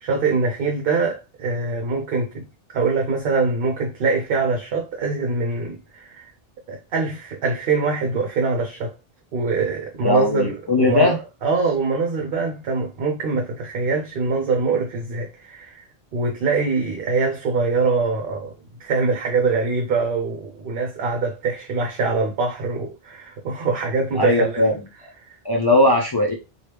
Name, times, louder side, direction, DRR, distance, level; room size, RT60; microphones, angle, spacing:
voice 1, 0.0-2.5 2.7-6.2 6.7-8.9 9.3-10.5 10.9-18.5 18.8-24.7 25.2-25.3, right 4 dB, 65° right, 0.8 m, -23 dB
voice 2, 10.0-11.2 24.2-24.7 25.4-26.3, left 1 dB, 35° left, 0.4 m, -18 dB
3.0 x 2.3 x 3.3 m
omnidirectional pair, 1.1 m